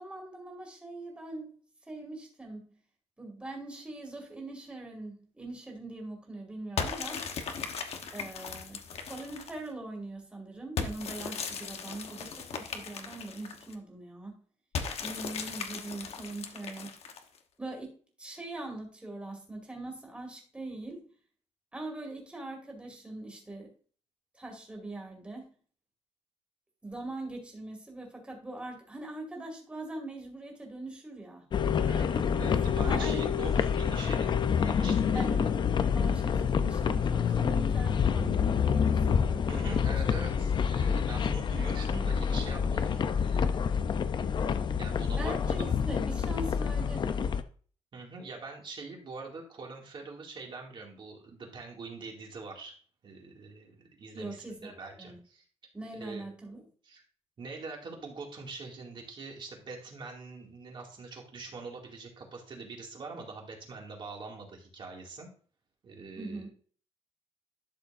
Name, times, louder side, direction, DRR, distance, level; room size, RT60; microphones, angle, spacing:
voice 1, 0.0-1.5 1.9-2.7 3.2-7.2 8.1-14.4 15.0-17.0 17.6-21.1 21.7-23.7 24.3-25.5 26.8-31.4 32.4-33.3 35.1-35.4 35.9-40.0 40.6-40.9 45.2-47.3 54.1-55.2 55.7-56.6 66.2-66.5, right 2 dB, 10° right, 0 dB, 2.4 m, -42 dB
sound 1, 6.8-9.7 10.8-13.7 14.7-17.4, left 6 dB, 65° left, 1.1 m, -37 dB
sound 2, 31.5-47.4, left 7 dB, 45° left, 0.5 m, -27 dB
voice 2, 31.9-35.5 39.5-43.7 44.8-45.8 47.9-52.7 53.0-55.4 55.9-56.3 56.8-57.0 57.4-65.3 65.8-66.5, right 3 dB, 45° right, 0 dB, 2.3 m, -44 dB
12.0 x 6.7 x 2.6 m, 0.43 s
wide cardioid pair, 155°, 11 cm